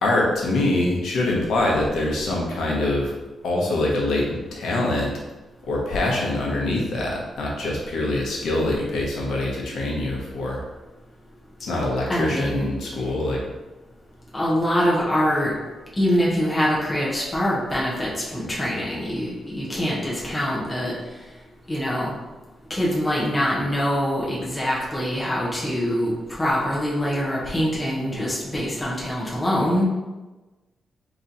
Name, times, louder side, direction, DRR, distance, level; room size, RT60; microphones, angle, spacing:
voice 1, 0.0-3.1 3.4-5.1 5.7-10.6 11.6-13.4, left 2 dB, 70° left, -2 dB, 1.0 m, -24 dB
voice 2, 12.1-12.7 14.3-15.5 16.0-20.9 21.7-22.1 22.7-29.8, equal, 15° left, -5 dB, 0.9 m, -24 dB
4.1 x 3.0 x 3.9 m, 1.1 s
wide cardioid pair, 170°, 0 cm